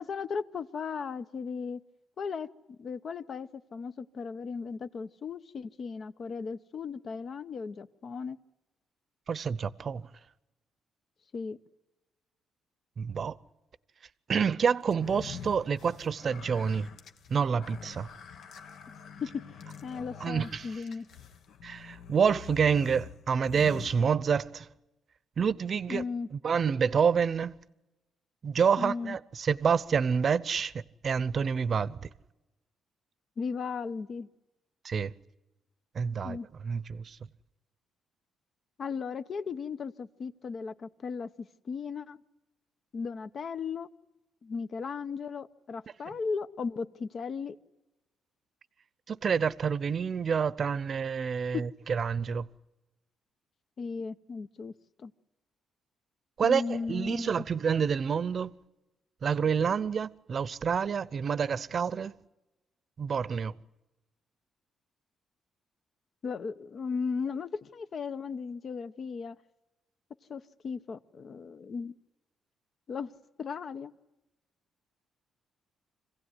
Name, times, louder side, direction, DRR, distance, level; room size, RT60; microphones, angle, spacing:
voice 1, 0.0-1.8 2.2-2.5 2.8-8.4 11.3-11.6 19.2-19.4 19.8-21.1 25.9-26.3 28.8-29.2 33.4-34.3 36.2-36.5 38.8-42.2 42.9-43.9 44.4-47.6 51.5-51.7 53.8-54.7 55.0-55.1 56.4-57.4 66.2-69.4 70.3-71.9 72.9-73.1 73.4-73.9, left 5 dB, 50° left, 0.9 m, -36 dB
voice 2, 9.3-10.0 13.0-13.4 14.3-16.9 17.3-18.1 20.2-20.7 21.6-24.7 25.4-26.0 26.4-27.5 28.4-30.7 31.0-32.1 34.8-35.1 35.9-36.4 36.6-37.2 49.1-52.5 56.4-58.5 59.2-62.1 63.0-63.5, right 6 dB, 50° right, 0.8 m, -28 dB
sound 1, 14.9-24.6, left 7 dB, 75° left, 1.3 m, -46 dB
26.0 x 16.5 x 9.8 m
cardioid pair, 90°, 0 cm